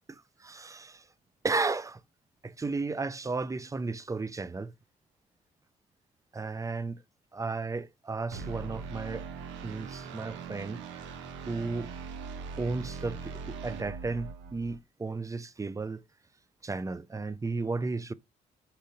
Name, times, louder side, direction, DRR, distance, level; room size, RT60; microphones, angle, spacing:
voice 1, 0.1-1.0 1.4-2.0 2.4-4.7 6.3-7.0 7.3-9.3 9.6-10.8 11.5-11.9 12.6-16.0 16.6-18.1, right 3 dB, 15° right, 0.5 m, -34 dB
sound 1, 8.3-14.8, right 5 dB, 65° right, 0.8 m, -41 dB
4.3 x 3.7 x 2.6 m
figure-of-eight pair, 40°, 21 cm